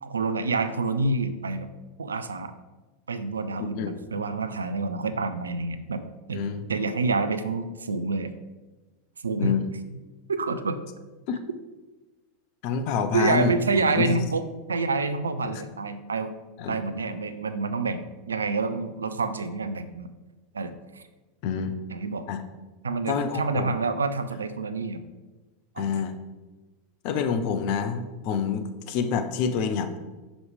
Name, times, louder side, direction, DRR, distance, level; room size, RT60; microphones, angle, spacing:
voice 1, 0.0-1.7 2.0-2.5 3.1-6.0 6.3-6.4 6.7-8.3 9.2-9.5 10.3-10.8 13.1-14.4 14.7-16.3 16.7-18.0 18.3-20.1 20.5-21.0 21.9-22.3 22.8-25.0 25.8-25.9, right 3 dB, 75° right, 11 dB, 0.4 m, -27 dB
voice 2, 6.3-6.7 9.4-9.7 11.3-11.4 12.6-14.1 15.4-15.6 16.6-16.8 21.4-21.7 22.3-22.4 23.1-23.8 25.8-26.1 27.0-30.0, left 6 dB, 50° left, 9 dB, 0.6 m, -27 dB
6.1 x 5.0 x 3.5 m, 1.2 s
figure-of-eight pair, 85°, 0 cm